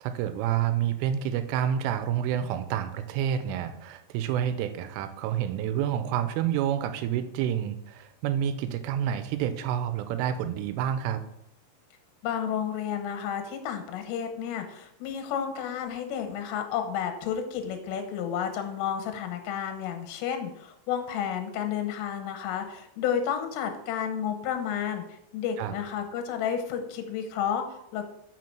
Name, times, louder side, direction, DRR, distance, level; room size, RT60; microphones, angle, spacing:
voice 1, 0.0-11.2 25.6-25.7, right 10 dB, 85° right, 10 dB, 3.2 m, -28 dB
voice 2, 12.2-25.0 25.3-28.1, left 8 dB, 90° left, 6 dB, 3.6 m, -31 dB
7.6 x 5.9 x 5.9 m, 0.77 s
omnidirectional pair, 5.8 m